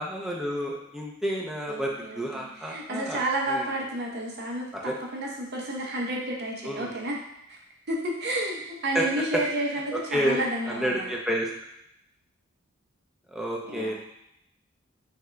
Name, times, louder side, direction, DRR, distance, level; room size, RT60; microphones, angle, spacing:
voice 1, 0.0-3.7 4.7-4.9 6.6-7.0 8.9-9.1 9.9-10.4 10.7-11.5 13.3-13.9, equal, ahead, -2 dB, 0.5 m, -30 dB
voice 2, 1.7-7.2 7.9-11.1 13.6-13.9, right 1 dB, 50° right, -1 dB, 0.8 m, -31 dB
3.7 x 3.4 x 3.3 m, 0.78 s
head